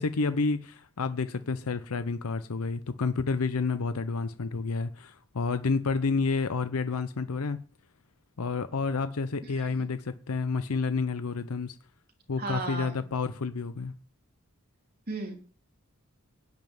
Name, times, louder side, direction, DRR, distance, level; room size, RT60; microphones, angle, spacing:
voice 1, 0.0-7.6 8.4-11.8 12.3-13.9, left 4 dB, 85° left, 0.7 m, -30 dB
voice 2, 12.4-13.0 15.1-15.4, right 3 dB, 45° right, 3.4 m, -35 dB
16.0 x 5.5 x 9.4 m
head